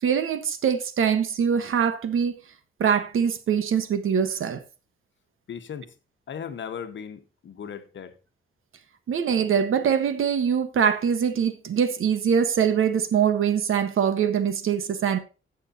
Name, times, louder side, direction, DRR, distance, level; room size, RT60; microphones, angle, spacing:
voice 1, 0.0-2.4 2.8-4.6 9.1-15.2, right 7 dB, 75° right, 1.2 m, -23 dB
voice 2, 5.5-5.9 6.3-8.2, left 7 dB, 65° left, 1.2 m, -37 dB
15.5 x 6.5 x 2.8 m
wide cardioid pair, 125°, 21 cm